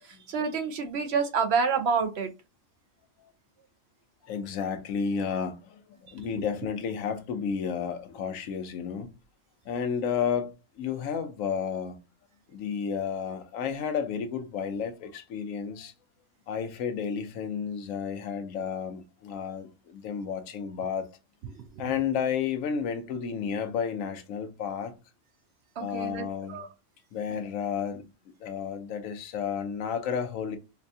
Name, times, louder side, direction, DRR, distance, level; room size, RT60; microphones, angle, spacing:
voice 1, 0.1-2.3 21.5-21.6 25.8-26.2 26.5-26.7, right 5 dB, 65° right, 0.7 m, -28 dB
voice 2, 4.2-9.1 9.7-12.0 12.5-15.9 16.5-21.1 21.8-24.9 25.8-26.6 27.1-28.0 28.4-30.6, left 7 dB, 80° left, 1.1 m, -32 dB
4.9 x 2.3 x 2.6 m
omnidirectional pair, 1.4 m